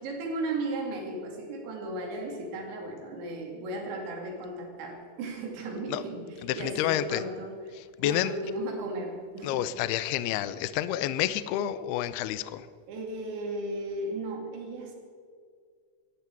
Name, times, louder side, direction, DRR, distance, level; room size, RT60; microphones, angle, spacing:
voice 1, 0.0-6.2 6.6-7.6 8.0-9.6 12.9-15.0, right 2 dB, 85° right, 1 dB, 4.7 m, -35 dB
voice 2, 6.4-7.2 7.8-8.3 9.4-12.7, left 12 dB, 85° left, 14 dB, 2.3 m, -29 dB
17.5 x 14.5 x 4.6 m, 2.1 s
omnidirectional pair, 5.1 m